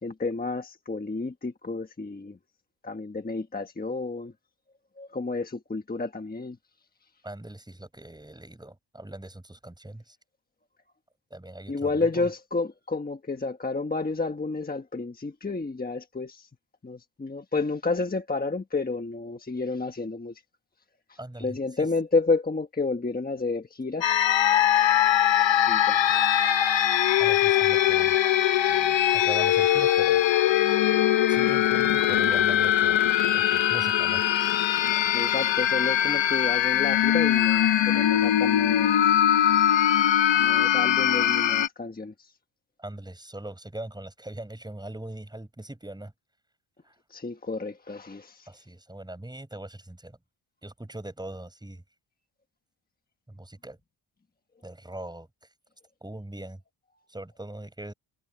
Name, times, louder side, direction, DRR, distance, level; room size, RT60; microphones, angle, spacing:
voice 1, 0.0-2.4 2.8-4.3 5.0-6.6 11.7-16.5 16.8-20.4 21.1-24.1 25.7-26.0 35.1-39.1 40.4-42.1 47.1-48.5, left 3 dB, 20° left, 1.3 m, -30 dB
voice 2, 7.2-10.2 11.3-12.3 21.2-21.9 27.2-28.2 28.7-30.2 31.3-33.0 33.3-34.2 42.8-46.1 46.8-46.9 48.5-50.2 50.6-51.8 53.3-53.8 54.6-55.3 56.0-56.6 57.1-57.9, right 1 dB, 10° right, 5.7 m, -41 dB
sound 1, 24.0-41.7, left 11 dB, 65° left, 1.1 m, -22 dB
wide cardioid pair, 135°, 49 cm